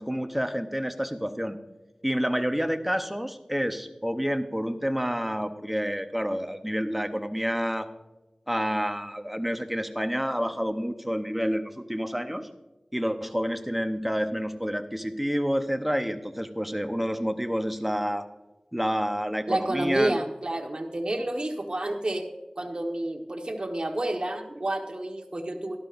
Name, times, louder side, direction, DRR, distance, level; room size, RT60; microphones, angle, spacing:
voice 1, 0.0-1.6 2.0-7.9 8.5-12.5 12.9-18.3 18.7-20.2, equal, 5° right, 8 dB, 0.8 m, -29 dB
voice 2, 19.5-22.3 22.6-25.8, right 1 dB, 50° right, 3 dB, 1.3 m, -29 dB
12.5 x 12.0 x 2.6 m, 1.1 s
wide cardioid pair, 55°, 2 cm